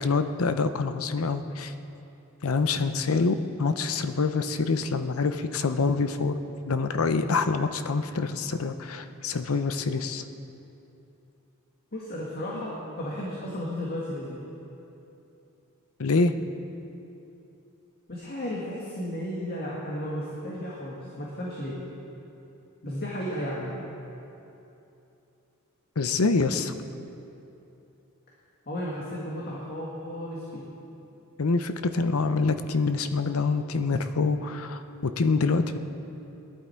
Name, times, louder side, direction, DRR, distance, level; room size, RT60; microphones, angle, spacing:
voice 1, 0.0-1.7 2.4-6.4 6.7-10.2 12.5-12.6 16.0-16.3 26.0-26.7 31.4-35.8, left 4 dB, 70° left, 9 dB, 0.7 m, -26 dB
voice 2, 11.9-14.4 18.1-21.7 22.8-23.8 28.7-30.6, equal, 45° left, -5 dB, 1.9 m, -34 dB
18.0 x 11.0 x 4.5 m, 2.9 s
head